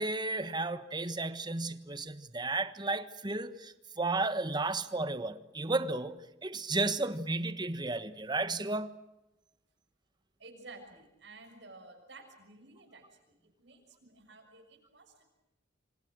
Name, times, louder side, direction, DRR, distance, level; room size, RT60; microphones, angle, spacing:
voice 1, 0.0-8.9, right 2 dB, 25° right, 1.4 m, -33 dB
voice 2, 10.4-15.2, right 3 dB, 70° right, 6.4 m, -53 dB
27.0 x 26.5 x 6.2 m
head